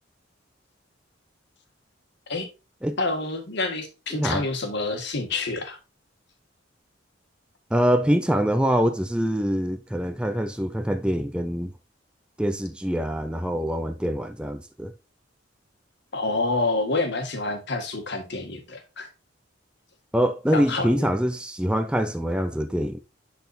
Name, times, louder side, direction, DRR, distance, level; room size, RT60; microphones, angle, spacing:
voice 1, 3.0-5.8 16.1-19.1 20.5-21.1, left 3 dB, 60° left, 1.6 m, -28 dB
voice 2, 4.1-4.5 7.7-11.7 12.4-14.9 20.1-23.0, equal, 5° right, 0.5 m, -24 dB
10.5 x 4.2 x 2.6 m
head